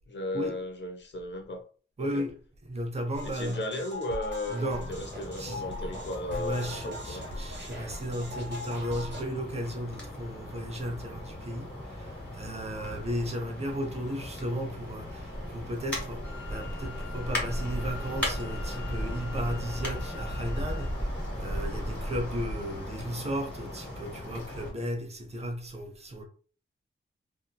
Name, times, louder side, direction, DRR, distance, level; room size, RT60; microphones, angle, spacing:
voice 1, 0.1-1.7 2.0-2.3 3.2-7.3, left 1 dB, 60° left, 0.8 m, -35 dB
voice 2, 2.0-2.3 2.6-3.6 4.5-5.0 5.4-5.6 6.3-26.2, equal, 30° right, 0.6 m, -35 dB
sound 1, 3.1-9.2, left 1 dB, 60° right, 1.1 m, -40 dB
sound 2, 4.7-24.7, equal, 5° left, 1.5 m, -37 dB
Wind instrument woodwind instrument, 16.2-21.1, left 9 dB, 85° left, 1.0 m, -48 dB
2.9 x 2.6 x 2.2 m
wide cardioid pair, 145°, 21 cm